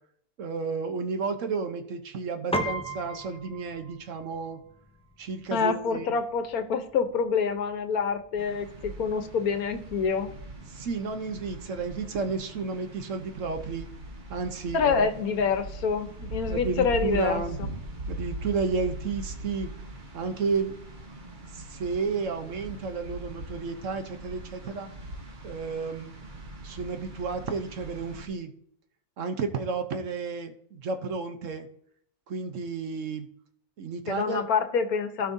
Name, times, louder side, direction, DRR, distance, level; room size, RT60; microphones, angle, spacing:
voice 1, 0.4-4.6 5.2-6.1 10.7-13.9 14.3-15.1 16.5-17.8 18.1-19.7 20.1-20.8 21.5-24.9 25.4-26.1 26.6-28.5 29.2-31.7 32.3-33.3 33.8-34.4, right 4 dB, 60° right, 7 dB, 1.1 m, -32 dB
Piano, 2.5-12.1, right 1 dB, 10° left, 0.4 m, -40 dB
voice 2, 5.5-10.3 14.7-17.4 34.1-35.3, left 6 dB, 75° left, 8 dB, 1.3 m, -27 dB
sound 1, 8.4-28.3, right 1 dB, 35° right, 1.2 m, -41 dB
16.0 x 5.5 x 2.7 m, 0.67 s
omnidirectional pair, 1.6 m